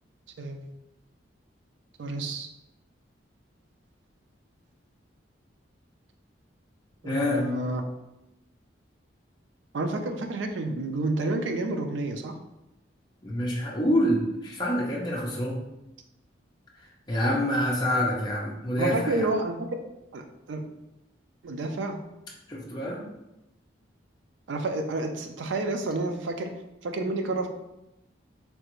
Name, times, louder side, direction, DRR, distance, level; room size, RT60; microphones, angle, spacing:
voice 1, 0.4-0.8 2.0-2.5 7.0-7.8 9.7-12.3 18.8-19.7 20.1-20.6 21.4-22.0 24.5-26.5 26.8-27.5, right 2 dB, 70° right, 6 dB, 0.4 m, -29 dB
voice 2, 7.0-7.5 13.2-15.6 17.1-19.3 22.5-23.0, equal, 20° left, -4 dB, 0.5 m, -26 dB
3.3 x 2.4 x 3.0 m, 0.90 s
head